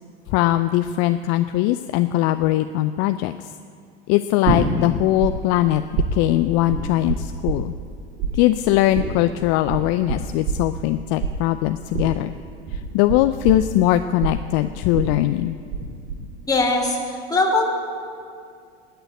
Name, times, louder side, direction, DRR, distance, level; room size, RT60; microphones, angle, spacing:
voice 1, 0.3-3.5 4.1-7.7 8.3-12.3 12.7-15.6, left 15 dB, 50° left, 10 dB, 0.6 m, -21 dB
sound 1, 4.4-5.3 5.6-7.9 8.2-15.8 16.1-16.6, right 5 dB, 50° right, 4.9 m, -26 dB
voice 2, 16.5-17.6, left 2 dB, 10° left, -2 dB, 3.4 m, -20 dB
19.0 x 6.9 x 8.9 m, 2.3 s
hypercardioid pair, 80°, 32 cm